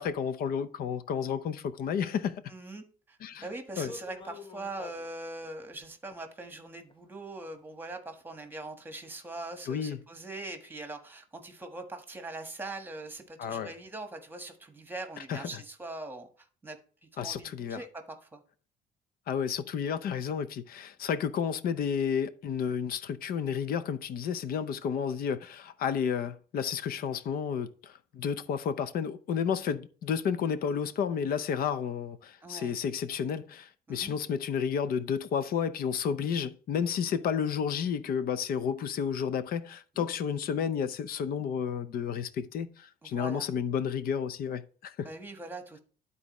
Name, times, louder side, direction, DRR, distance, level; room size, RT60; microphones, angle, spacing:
voice 1, 0.0-2.4 3.2-3.5 3.8-3.9 9.7-10.0 13.4-13.7 15.3-15.6 17.2-17.8 19.3-45.1, left 7 dB, 60° left, 0.7 m, -31 dB
voice 2, 2.5-18.4 32.4-32.8 33.9-34.1 39.9-40.1 43.0-43.5 45.0-45.8, right 2 dB, 10° right, 1.4 m, -42 dB
sound 1, 3.8-5.1 6.1-6.2 6.9-7.0 7.5-7.6 8.1-8.2 8.8-8.9 9.2-9.3, left 4 dB, 30° left, 0.8 m, -47 dB
12.0 x 4.1 x 3.1 m
cardioid pair, 110°, 17 cm